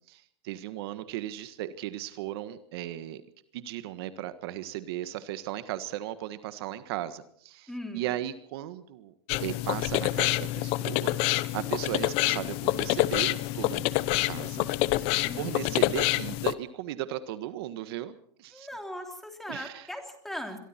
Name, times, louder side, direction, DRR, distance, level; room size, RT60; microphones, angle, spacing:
voice 1, 0.1-3.2 3.5-9.1 9.4-14.7 15.0-18.7 19.5-19.9, right 13 dB, 60° right, 11 dB, 1.5 m, -36 dB
voice 2, 7.7-8.1 15.2-15.8 18.5-20.6, left 1 dB, ahead, 4 dB, 3.3 m, -39 dB
sound 1, 9.3-16.5, left 17 dB, 40° left, 0.9 m, -27 dB
26.0 x 23.5 x 4.4 m, 0.63 s
supercardioid pair, 150°, 15 cm